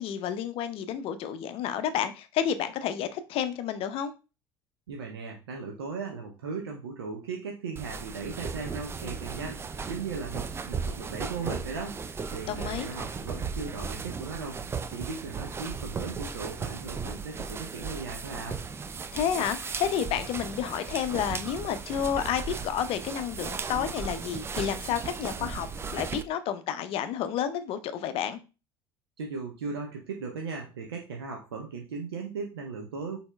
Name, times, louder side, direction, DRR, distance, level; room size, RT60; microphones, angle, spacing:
voice 1, 0.0-4.1 12.5-12.9 19.1-25.7 25.9-28.4, left 9 dB, 50° left, 0.5 m, -30 dB
voice 2, 4.9-14.6 14.9-18.6 29.2-33.2, right 4 dB, 80° right, 0.6 m, -37 dB
sound 1, 7.8-26.2, right 5 dB, 20° right, 0.3 m, -36 dB
4.3 x 3.4 x 2.2 m
figure-of-eight pair, 70°, 13 cm